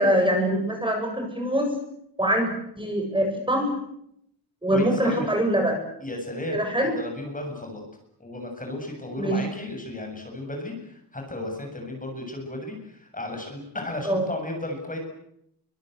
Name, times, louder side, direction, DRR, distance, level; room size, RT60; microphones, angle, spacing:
voice 1, 0.0-1.7 2.2-3.7 4.6-5.8 6.5-6.9 9.2-9.4 14.0-14.3, right 1 dB, 10° right, 2 dB, 7.5 m, -23 dB
voice 2, 4.7-5.3 6.0-7.8 8.2-15.0, left 1 dB, 20° left, 3 dB, 7.4 m, -34 dB
28.0 x 25.0 x 8.1 m, 0.76 s
wide cardioid pair, 155°, 39 cm